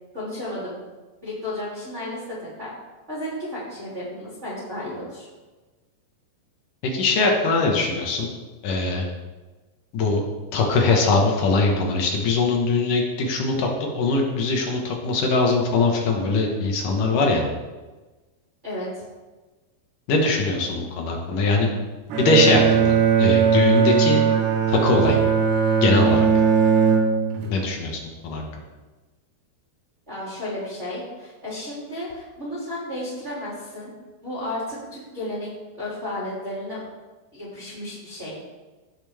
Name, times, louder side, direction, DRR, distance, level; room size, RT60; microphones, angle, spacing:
voice 1, 0.1-0.8 1.2-2.7 3.1-5.3 18.6-19.0 30.1-33.9 34.2-35.5 35.8-36.8 37.3-38.4, left 1 dB, 20° right, -9 dB, 2.8 m, -33 dB
voice 2, 6.8-8.3 8.6-9.1 9.9-10.2 10.5-13.7 13.9-17.4 20.1-21.7 22.2-24.2 24.7-25.2 25.8-26.3 27.5-28.4, left 3 dB, 60° left, 0 dB, 2.5 m, -21 dB
Bowed string instrument, 22.1-27.6, right 7 dB, 70° right, 3.2 m, -19 dB
16.5 x 5.8 x 3.6 m, 1.2 s
omnidirectional pair, 5.2 m